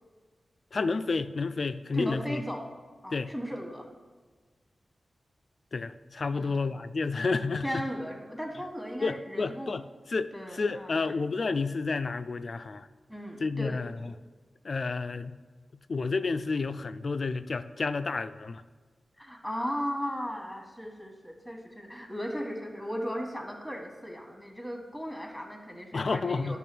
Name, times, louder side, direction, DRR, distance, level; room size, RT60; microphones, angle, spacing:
voice 1, 0.7-2.4 3.1-3.3 5.7-7.8 9.0-12.9 13.4-14.1 14.6-15.4 15.9-18.6 25.9-26.6, left 4 dB, 55° left, 11 dB, 0.3 m, -30 dB
voice 2, 1.9-2.7 3.0-3.9 6.3-6.6 7.6-9.7 10.3-11.3 13.1-13.8 19.2-26.6, equal, ahead, 2 dB, 1.3 m, -36 dB
10.0 x 3.5 x 6.0 m, 1.4 s
wide cardioid pair, 110°, 0 cm